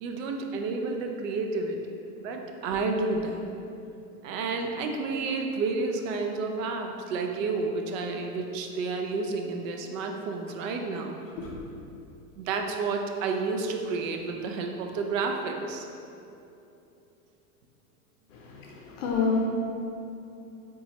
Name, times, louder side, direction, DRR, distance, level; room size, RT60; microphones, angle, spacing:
voice 1, 0.0-3.5 4.2-11.2 12.4-15.9, right 3 dB, 60° right, 3 dB, 0.5 m, -30 dB
voice 2, 18.3-19.4, left 5 dB, 60° left, -1 dB, 0.6 m, -29 dB
3.9 x 2.3 x 2.8 m, 2.8 s
hypercardioid pair, 125°, 44 cm